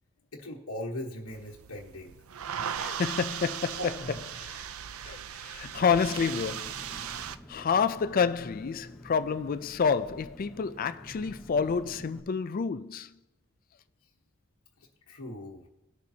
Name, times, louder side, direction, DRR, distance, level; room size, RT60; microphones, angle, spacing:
voice 1, 0.3-2.1 3.8-4.2 14.8-15.7, equal, 80° left, 1.2 m, -39 dB
sound 1, 1.3-7.4, right 9 dB, 70° right, 0.4 m, -38 dB
voice 2, 2.7-3.9 4.4-4.6 5.0-6.9 7.5-13.1, left 6 dB, 40° left, 0.4 m, -29 dB
Engine, 5.8-12.2, equal, ahead, 0.9 m, -49 dB
19.0 x 6.5 x 2.8 m
head